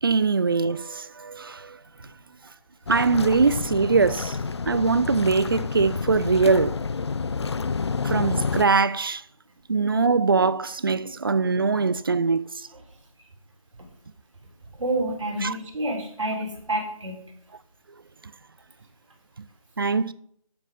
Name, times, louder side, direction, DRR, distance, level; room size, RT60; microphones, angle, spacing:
voice 1, 0.0-1.8 2.9-4.4 4.7-6.8 8.0-9.2 9.7-12.5 15.4-15.5 19.8-20.1, right 4 dB, 40° right, 0.5 m, -22 dB
sound 1, 2.9-8.6, left 5 dB, 50° left, 0.5 m, -29 dB
voice 2, 14.8-17.2, right 1 dB, 55° right, 3.9 m, -29 dB
11.5 x 7.6 x 5.0 m
figure-of-eight pair, 160°, 18 cm